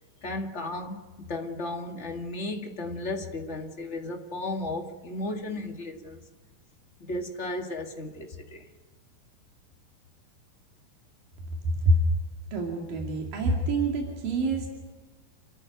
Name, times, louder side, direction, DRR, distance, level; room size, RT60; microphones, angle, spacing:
voice 1, 0.2-6.2 7.0-8.7, left 2 dB, 25° left, 1.7 m, -34 dB
voice 2, 11.6-12.0 12.5-14.7, right 1 dB, 90° right, 4.3 m, -26 dB
28.0 x 14.0 x 9.4 m
omnidirectional pair, 3.8 m